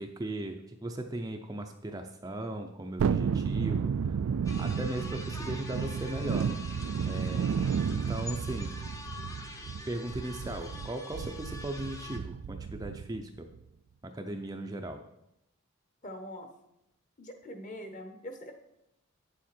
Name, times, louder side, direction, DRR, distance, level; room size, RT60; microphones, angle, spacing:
voice 1, 0.0-4.2 4.6-6.5 7.1-8.8 9.9-13.5 14.0-15.0, right 1 dB, 15° right, 5 dB, 0.5 m, -38 dB
Thunderstorm, 3.0-13.2 13.6-13.7, right 6 dB, 75° right, 0.3 m, -32 dB
sound 1, 4.4-12.2, left 2 dB, 15° left, 0.8 m, -45 dB
voice 2, 16.0-16.5 17.2-18.5, equal, 35° left, 5 dB, 1.2 m, -43 dB
8.9 x 7.4 x 4.4 m, 0.85 s
head